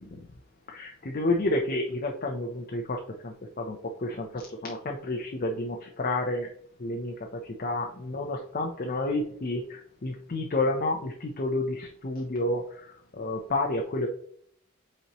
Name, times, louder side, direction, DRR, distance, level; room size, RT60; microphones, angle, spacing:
voice 1, 0.7-6.5 6.8-14.1, left 2 dB, 45° left, 1 dB, 0.7 m, -30 dB
8.2 x 4.3 x 3.0 m, 0.62 s
head